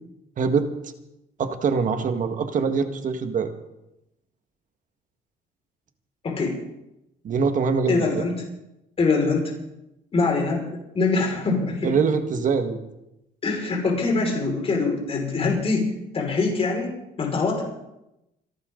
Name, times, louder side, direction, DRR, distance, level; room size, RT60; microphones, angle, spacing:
voice 1, 0.4-0.7 1.4-3.5 7.2-8.2 11.8-12.8, right 5 dB, 50° right, 7 dB, 1.8 m, -23 dB
voice 2, 6.2-6.6 7.9-8.3 9.0-9.5 10.1-10.7 10.9-11.9 13.4-16.9 17.2-17.6, left 3 dB, 35° left, 0 dB, 5.6 m, -23 dB
27.5 x 11.5 x 4.0 m, 0.89 s
cardioid pair, 110°, 17 cm